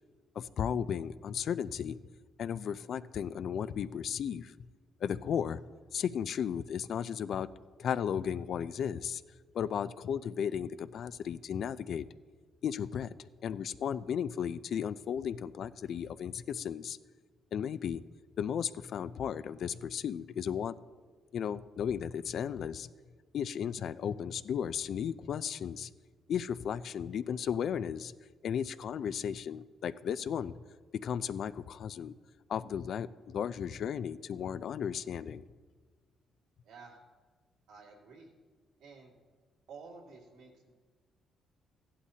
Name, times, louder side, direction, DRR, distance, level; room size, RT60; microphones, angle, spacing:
voice 1, 0.4-2.0 2.4-4.5 5.0-7.5 7.8-9.2 9.5-12.1 12.6-17.0 17.5-18.0 18.4-20.7 21.3-22.9 23.3-25.9 26.3-28.1 28.4-30.6 31.0-32.2 32.5-35.4, left 8 dB, 65° left, 15 dB, 0.3 m, -35 dB
voice 2, 36.6-37.0 37.7-38.3 38.8-39.2 39.7-40.7, right 4 dB, 90° right, -3 dB, 2.3 m, -51 dB
15.0 x 11.5 x 2.8 m, 1.5 s
cardioid pair, 90°, 0 cm